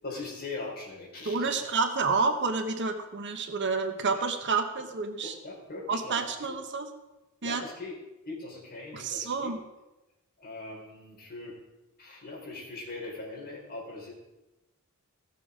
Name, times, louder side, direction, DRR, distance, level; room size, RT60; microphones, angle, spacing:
voice 1, 0.0-1.7 4.1-4.2 4.8-4.9 5.2-6.6 7.4-8.0 8.3-9.5 10.4-11.6 12.0-14.1, left 3 dB, 45° left, -4 dB, 4.3 m, -41 dB
voice 2, 1.2-5.3 5.9-6.9 7.4-7.6 8.9-9.6, right 4 dB, 55° right, 6 dB, 1.1 m, -29 dB
16.5 x 6.9 x 5.1 m, 1.0 s
head